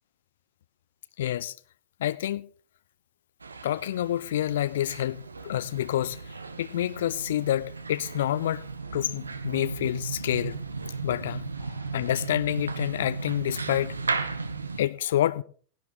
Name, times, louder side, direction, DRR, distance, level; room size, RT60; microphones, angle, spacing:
voice 1, 1.2-1.5 2.0-2.4 3.6-6.2 6.6-8.6 8.9-10.6 11.0-14.0 14.8-15.4, left 12 dB, 60° left, 0.5 m, -28 dB
sound 1, 3.4-14.8, right 4 dB, 75° right, 0.8 m, -36 dB
18.0 x 11.0 x 3.0 m
figure-of-eight pair, 90°, 0 cm